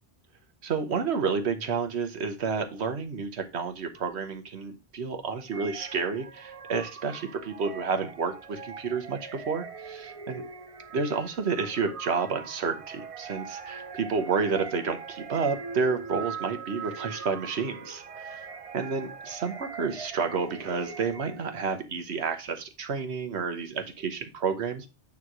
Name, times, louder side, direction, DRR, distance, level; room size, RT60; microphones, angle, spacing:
voice 1, 0.6-10.4 10.9-18.5 18.7-24.9, right 5 dB, 90° right, 7 dB, 1.3 m, -30 dB
sound 1, 5.5-21.7, right 6 dB, 40° right, 0.6 m, -41 dB
9.2 x 3.2 x 6.0 m, 0.29 s
omnidirectional pair, 1.1 m